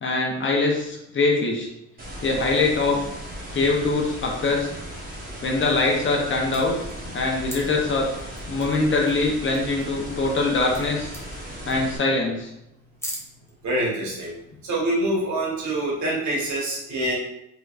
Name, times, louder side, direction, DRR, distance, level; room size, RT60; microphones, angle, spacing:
voice 1, 0.0-1.7 2.2-3.0 3.5-4.8 5.4-6.8 7.1-8.1 8.5-11.1 11.7-12.5, left 3 dB, 40° left, -1 dB, 0.8 m, -23 dB
sound 1, 2.0-12.0, equal, 30° right, 1.1 m, -37 dB
sound 2, 5.9-6.2 6.5-7.6 8.1-8.8 9.0-9.1 9.4-10.4 10.7-10.8 11.1-11.4 11.7-12.0 12.4-12.5 13.0-13.5 14.0-14.3, equal, 10° left, 0.9 m, -39 dB
voice 2, 13.6-14.3 14.6-17.1, right 1 dB, 70° right, -4 dB, 1.2 m, -25 dB
3.2 x 3.0 x 2.4 m, 0.83 s
cardioid pair, 90°, 30 cm